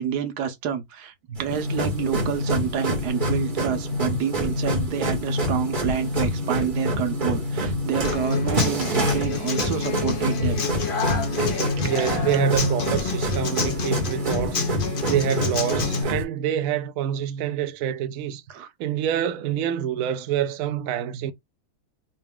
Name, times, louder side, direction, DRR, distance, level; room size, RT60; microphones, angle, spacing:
voice 1, 0.0-10.6 11.4-12.1 18.5-18.7, right 8 dB, 90° right, 1.4 m, -28 dB
sound 1, 1.4-16.2, equal, 35° right, 1.3 m, -26 dB
Human voice / Acoustic guitar, 8.0-16.0, left 5 dB, 45° left, 0.7 m, -30 dB
voice 2, 11.8-14.6 15.0-21.3, right 10 dB, 70° right, 0.9 m, -26 dB
4.0 x 2.3 x 3.5 m
omnidirectional pair, 1.7 m